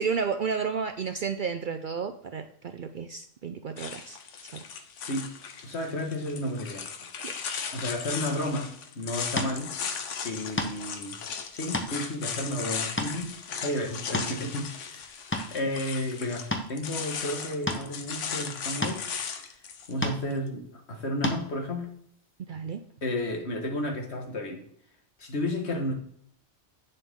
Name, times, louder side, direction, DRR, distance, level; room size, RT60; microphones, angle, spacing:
voice 1, 0.0-4.2 4.5-4.7 7.2-7.4 22.5-22.8, right 6 dB, 60° right, 8 dB, 0.6 m, -32 dB
sound 1, 3.8-19.9, left 6 dB, 85° left, 1.2 m, -37 dB
voice 2, 5.6-6.9 7.7-9.7 10.2-11.2 11.5-15.1 15.4-19.0 19.9-21.9 23.0-24.6 25.2-25.9, left 1 dB, 65° left, 2 dB, 1.8 m, -32 dB
sound 2, 9.4-9.5 10.6-10.9 11.5-11.9 12.4-12.5 13.0-13.2 13.9-14.5 15.0-15.5 16.5-16.7 17.7-17.9 18.8-19.0 20.0-20.2 21.2-21.4, left 1 dB, 10° left, 0.8 m, -30 dB
8.9 x 6.8 x 3.6 m, 0.65 s
omnidirectional pair, 1.2 m